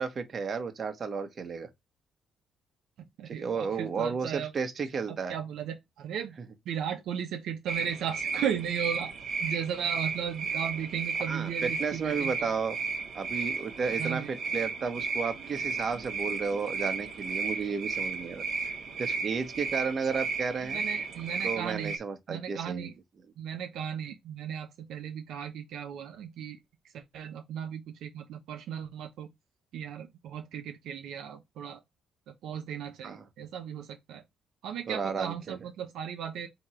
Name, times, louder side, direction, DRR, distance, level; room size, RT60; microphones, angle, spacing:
voice 1, 0.0-1.7 3.3-5.3 11.3-12.8 13.1-18.4 19.0-20.8 21.4-22.9 33.0-33.3 34.9-35.6, right 5 dB, 45° right, 1.0 m, -33 dB
voice 2, 3.0-4.5 5.1-6.4 6.7-9.1 9.4-12.5 14.0-14.3 20.7-21.9 22.3-22.9 23.4-26.6 26.9-29.3 29.7-31.8 32.3-34.2 34.6-36.5, right 8 dB, 80° right, 0.7 m, -36 dB
sound 1, 7.7-22.0, right 4 dB, 60° right, 1.0 m, -34 dB
3.6 x 2.9 x 4.3 m
cardioid pair, 90°, 0 cm